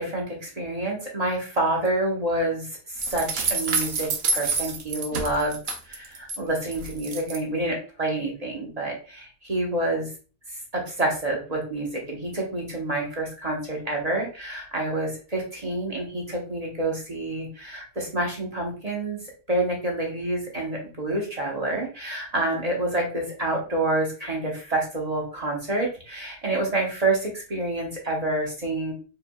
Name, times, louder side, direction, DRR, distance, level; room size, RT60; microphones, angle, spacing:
voice 1, 0.0-2.7 3.1-5.6 5.9-10.0 10.7-19.2 19.5-28.9, right 2 dB, 30° right, -1 dB, 0.8 m, -28 dB
sound 1, 3.0-6.4 6.7-7.4, right 4 dB, 60° right, 0.6 m, -28 dB
4.6 x 3.2 x 2.3 m, 0.35 s
omnidirectional pair, 1.7 m